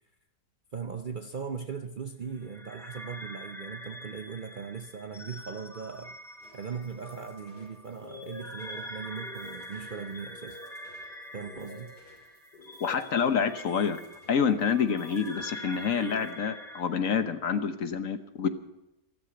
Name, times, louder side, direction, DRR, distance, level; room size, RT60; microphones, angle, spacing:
voice 1, 0.7-6.2 6.5-10.6 11.3-12.0, right 6 dB, 45° right, 7 dB, 0.6 m, -39 dB
sound 1, 2.4-16.8, equal, ahead, 1.2 m, -45 dB
sound 2, 6.4-16.3, left 3 dB, 85° left, 6.0 m, -52 dB
voice 2, 12.8-14.0 14.3-18.5, left 6 dB, 60° left, 10 dB, 1.3 m, -27 dB
14.0 x 13.5 x 7.7 m, 0.90 s
omnidirectional pair, 1.7 m